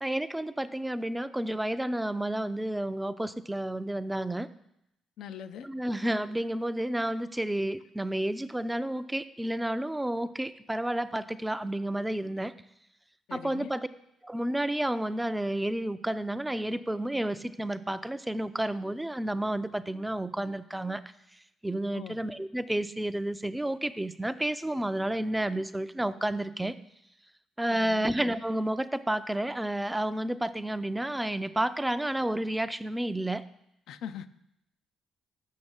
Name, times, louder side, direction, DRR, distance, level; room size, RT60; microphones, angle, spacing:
voice 1, 0.0-4.5 5.6-12.5 13.3-13.9 14.2-21.0 21.6-26.8 27.6-33.4, right 1 dB, 10° right, 12 dB, 0.4 m, -31 dB
voice 2, 5.2-5.7 13.3-13.7 21.9-22.2 27.7-28.1 33.9-34.3, left 9 dB, 80° left, 11 dB, 0.4 m, -41 dB
6.6 x 6.1 x 7.2 m, 0.79 s
cardioid pair, 90°, 0 cm